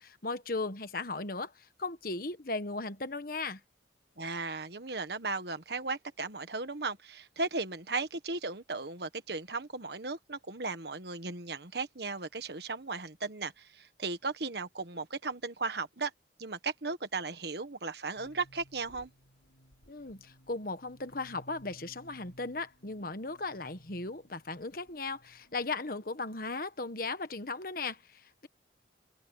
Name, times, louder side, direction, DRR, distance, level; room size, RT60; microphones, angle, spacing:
voice 1, 0.0-3.6 19.9-28.5, left 3 dB, 50° left, 1.3 m, -37 dB
voice 2, 4.2-16.1 16.4-19.1, right 3 dB, 60° right, 1.5 m, -36 dB
sound 1, 18.2-25.7, equal, 85° left, 6.9 m, -59 dB
open air
head